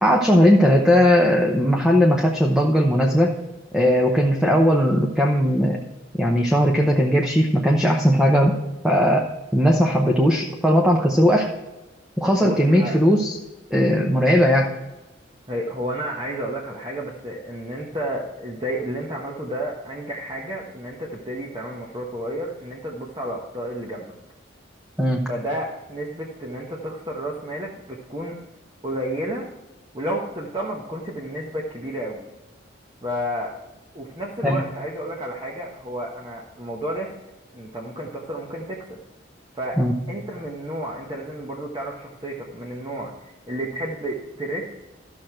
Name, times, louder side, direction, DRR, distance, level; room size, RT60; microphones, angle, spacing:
voice 1, 0.0-3.4 3.7-5.8 6.2-8.5 8.8-9.3 9.5-11.5 12.2-13.4 13.7-14.7 25.0-25.2 34.4-34.6 39.8-39.9, equal, 5° right, 0 dB, 0.8 m, -18 dB
voice 2, 12.4-13.0 15.5-24.1 25.3-28.3 28.8-29.5 29.9-32.2 33.0-33.5 33.9-37.1 37.5-38.8 39.5-44.7, right 1 dB, 25° right, -2 dB, 1.2 m, -31 dB
12.5 x 6.5 x 4.4 m, 1.0 s
head